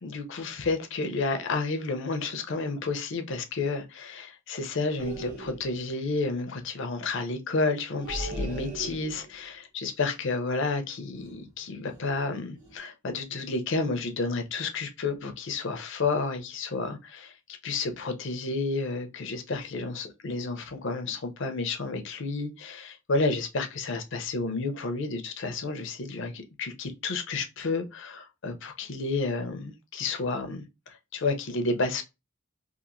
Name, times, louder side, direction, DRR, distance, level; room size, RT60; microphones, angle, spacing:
voice 1, 0.0-17.3 17.6-32.0, left 3 dB, 65° left, 0.6 m, -31 dB
sound 1, 5.0-5.9 7.9-9.5 11.1-11.5 11.8-12.2 12.6-12.8, right 2 dB, 35° right, 1.3 m, -38 dB
2.8 x 2.6 x 2.5 m
head